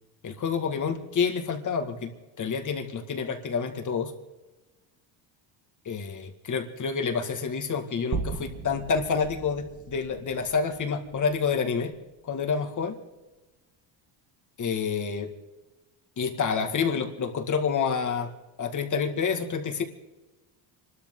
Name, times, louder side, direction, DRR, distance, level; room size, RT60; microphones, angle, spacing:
voice 1, 0.2-2.1 2.4-4.1 5.9-11.9 12.3-13.0 14.6-15.3 16.2-18.3 18.6-19.8, left 5 dB, 35° left, 6 dB, 2.1 m, -28 dB
sound 1, 8.1-12.4, right 5 dB, 35° right, 1.6 m, -38 dB
26.0 x 13.0 x 3.8 m, 1.1 s
cardioid pair, 120°, 50 cm